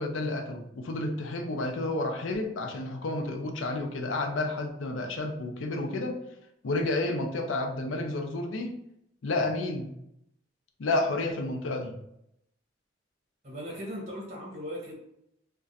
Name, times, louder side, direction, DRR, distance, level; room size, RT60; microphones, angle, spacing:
voice 1, 0.0-6.2 6.6-8.7 9.2-9.9 10.8-11.9, left 2 dB, 90° left, 4 dB, 0.5 m, -30 dB
voice 2, 13.4-14.9, equal, 35° right, -3 dB, 0.8 m, -38 dB
2.4 x 2.2 x 3.9 m, 0.78 s
head